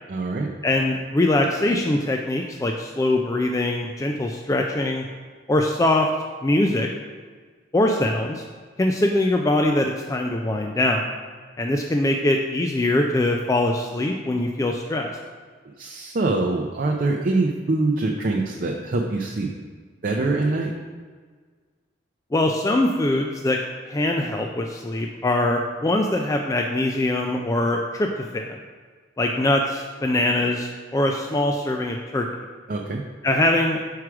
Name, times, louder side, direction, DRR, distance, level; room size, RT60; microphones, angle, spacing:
voice 1, 0.1-0.5 15.8-19.5 20.0-20.7 32.7-33.0, right 2 dB, 50° right, 1 dB, 0.5 m, -24 dB
voice 2, 0.6-5.1 5.5-6.1 6.4-6.9 7.7-8.4 8.8-11.1 11.6-15.1 22.3-23.6 23.9-28.6 29.2-32.3 33.2-33.8, left 1 dB, 20° left, 2 dB, 0.3 m, -22 dB
4.7 x 4.7 x 6.1 m, 1.6 s
head